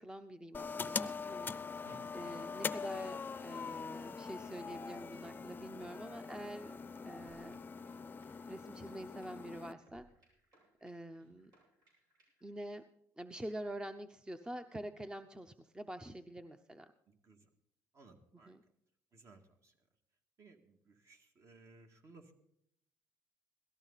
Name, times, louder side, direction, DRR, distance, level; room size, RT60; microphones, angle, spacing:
voice 1, 0.0-1.5 2.1-6.8 7.0-7.6 8.5-10.0 10.8-11.5 12.4-12.8 13.2-16.9 18.5-18.6, right 1 dB, 10° right, 9 dB, 0.7 m, -46 dB
sound 1, 0.5-9.7, left 5 dB, 30° left, 0.6 m, -43 dB
sound 2, 7.2-12.5, right 1 dB, 75° right, 7.6 m, -70 dB
voice 2, 17.1-17.5 17.9-18.6 19.1-19.7 20.4-22.3, right 3 dB, 50° right, 5 dB, 2.1 m, -60 dB
17.5 x 14.0 x 4.1 m, 0.73 s
cardioid pair, 95°, 7 cm